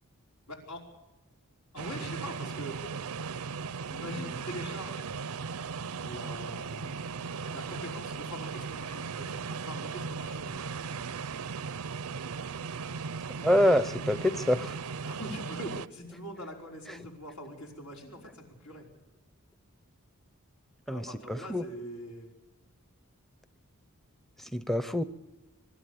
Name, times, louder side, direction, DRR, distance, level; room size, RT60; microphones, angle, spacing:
voice 1, 0.5-0.8 1.7-2.8 3.9-5.1 5.9-7.1 7.5-10.6 15.0-18.9 20.9-22.3, equal, 90° left, 0 dB, 5.2 m, -43 dB
sound 1, 1.8-15.9, right 5 dB, 75° right, 0.6 m, -37 dB
voice 2, 13.4-14.8 20.9-21.6 24.4-25.0, left 1 dB, ahead, 12 dB, 0.6 m, -26 dB
24.5 x 12.5 x 8.5 m, 1.1 s
head